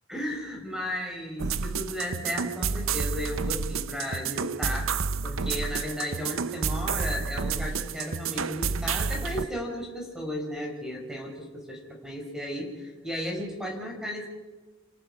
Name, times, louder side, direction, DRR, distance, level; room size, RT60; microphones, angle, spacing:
voice 1, 0.1-14.3, equal, 5° right, 0 dB, 5.0 m, -34 dB
sound 1, 1.4-9.5, right 5 dB, 85° right, 0.7 m, -30 dB
29.0 x 17.5 x 5.5 m, 1.2 s
head